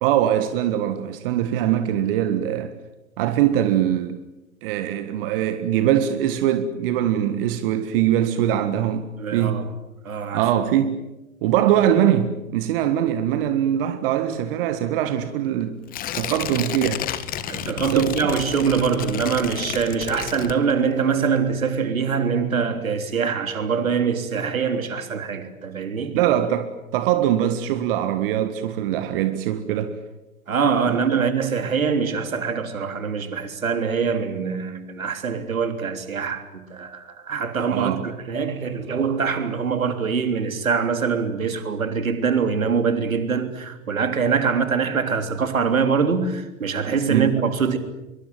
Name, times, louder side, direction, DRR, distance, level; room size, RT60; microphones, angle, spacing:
voice 1, 0.0-2.7 3.2-4.2 4.6-9.0 9.3-9.6 10.3-11.0 11.4-15.8 16.1-17.1 17.7-18.1 26.1-30.0 30.9-31.2 37.7-38.0 47.1-47.4, right 11 dB, 40° right, 1.7 m, -22 dB
voice 2, 9.2-9.7 10.0-10.5 17.5-26.3 30.5-47.8, right 6 dB, 75° right, 3.5 m, -24 dB
Tearing, 15.9-21.0 21.4-21.5, left 11 dB, 20° left, 1.4 m, -31 dB
23.5 x 23.5 x 9.2 m
figure-of-eight pair, 115°, 41 cm